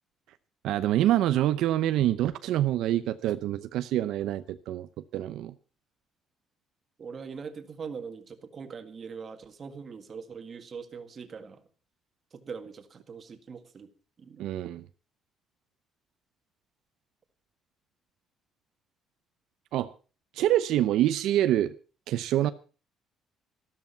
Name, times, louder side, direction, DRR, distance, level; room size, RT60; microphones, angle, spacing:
voice 1, 0.6-4.9 5.1-5.5 14.4-14.8 19.7-19.9 20.3-21.7 22.1-22.5, right 13 dB, 75° right, 11 dB, 0.7 m, -26 dB
voice 2, 7.0-11.6 12.3-13.9 14.2-14.5, right 5 dB, 30° right, 8 dB, 1.8 m, -42 dB
13.5 x 13.0 x 5.6 m, 0.37 s
cardioid pair, 165°, 0 cm